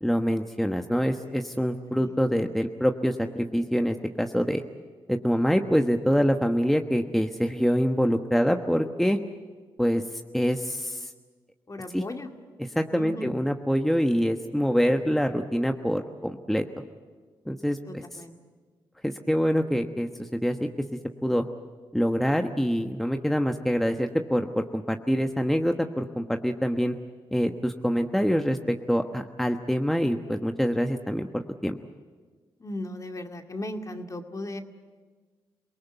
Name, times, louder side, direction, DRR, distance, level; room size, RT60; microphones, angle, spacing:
voice 1, 0.0-4.6 5.1-9.2 9.8-10.0 10.3-11.1 11.9-12.0 12.8-16.6 17.5-18.2 19.0-20.7 21.2-21.4 21.9-27.0 27.3-31.8, equal, 5° left, 5 dB, 1.2 m, -25 dB
voice 2, 11.7-12.3 12.9-13.3 17.9-18.3 32.6-34.6, left 1 dB, 35° left, 5 dB, 2.2 m, -36 dB
27.0 x 18.5 x 8.2 m, 1.5 s
supercardioid pair, 50°, 10 cm